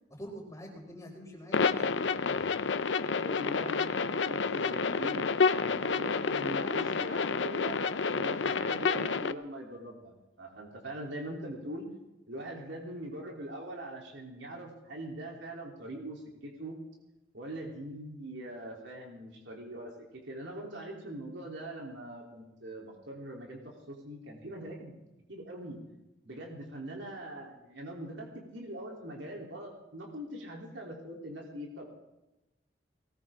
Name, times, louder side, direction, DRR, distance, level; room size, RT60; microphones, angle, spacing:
voice 1, 0.1-2.5, equal, 15° left, -1 dB, 4.3 m, -46 dB
sound 1, 1.5-9.3, left 5 dB, 75° left, 0.7 m, -29 dB
voice 2, 3.2-11.9 12.3-16.8 17.3-24.9 25.3-25.8 26.2-31.8, right 1 dB, 75° right, -1 dB, 3.5 m, -42 dB
20.0 x 18.5 x 3.8 m, 0.97 s
head